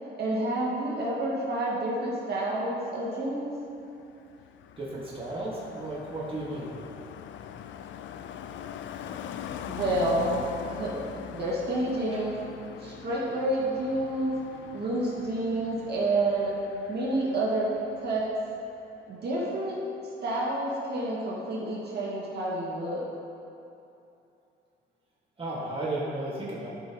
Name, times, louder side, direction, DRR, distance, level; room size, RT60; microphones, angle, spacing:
voice 1, 0.0-3.5 8.9-9.1 9.7-10.4 10.7-11.0 11.3-12.3 12.8-14.3 14.7-16.5 16.9-17.7 18.0-18.3 19.1-19.8 20.2-23.0, right 1 dB, 55° right, -6 dB, 1.9 m, -29 dB
Car passing by, 3.6-18.4 18.7-19.0, left 9 dB, 70° left, 0.4 m, -42 dB
voice 2, 4.8-6.7 12.1-12.2 25.4-26.7, right 2 dB, 25° right, -6 dB, 1.7 m, -34 dB
12.0 x 5.5 x 3.0 m, 2.8 s
cardioid pair, 90°, 20 cm